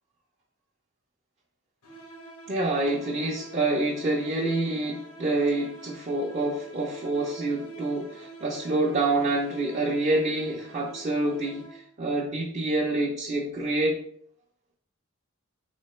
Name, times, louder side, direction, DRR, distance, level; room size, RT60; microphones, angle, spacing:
sound 1, 1.8-12.0, right 3 dB, 90° left, 1.2 m, -46 dB
voice 1, 2.5-14.0, right 2 dB, 35° right, -3 dB, 0.6 m, -27 dB
4.1 x 3.7 x 3.1 m, 0.63 s
head